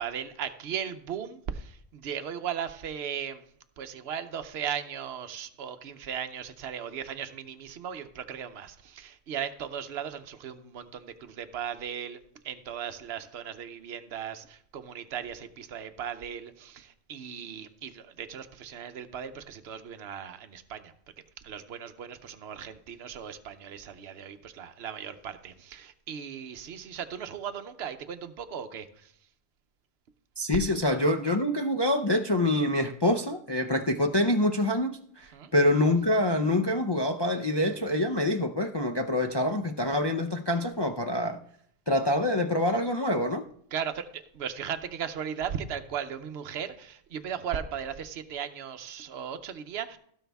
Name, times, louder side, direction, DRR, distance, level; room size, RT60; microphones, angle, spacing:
voice 1, 0.0-3.4 3.8-12.2 12.4-20.9 21.4-29.1 35.3-35.5 43.7-50.0, right 8 dB, 55° right, 1.0 m, -37 dB
voice 2, 30.4-41.4 41.9-43.4, left 1 dB, 40° left, 0.3 m, -26 dB
16.5 x 6.4 x 3.5 m
omnidirectional pair, 1.3 m